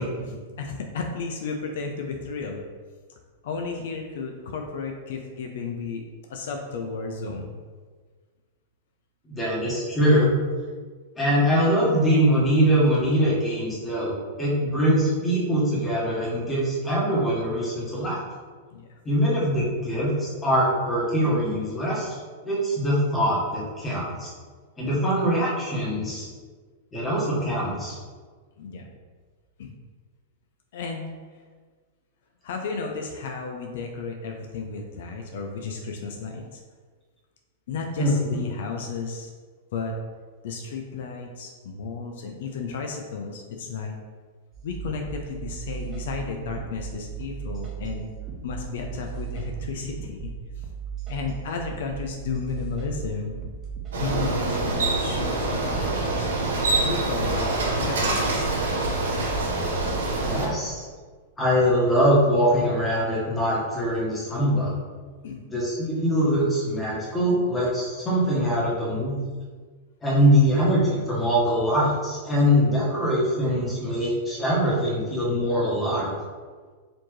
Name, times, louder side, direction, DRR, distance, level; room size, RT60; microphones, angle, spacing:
voice 1, 0.0-2.6 3.4-6.0 6.3-7.5 18.7-18.9 21.2-21.4 26.0-26.1 28.6-28.9 29.6-29.7 30.7-31.0 32.4-36.6 37.7-39.3 39.7-39.9 40.4-43.9 44.6-48.0 48.4-50.3 50.6-50.7 51.1-53.3 54.0-56.3 56.8-58.5 65.2-65.4, left 4 dB, 70° left, 2 dB, 0.5 m, -33 dB
voice 2, 9.3-10.3 11.2-18.2 19.0-24.3 24.8-26.3 26.9-28.0 38.0-38.1 60.1-60.8 61.4-64.7 65.5-69.1 70.0-76.1, equal, 15° left, -6 dB, 1.4 m, -23 dB
sound 1, 44.5-60.5, right 7 dB, 25° right, 0.8 m, -37 dB
Bicycle, 53.9-60.5, right 2 dB, 90° right, 1.1 m, -25 dB
4.2 x 2.8 x 3.1 m, 1.5 s
hypercardioid pair, 135°, 0 cm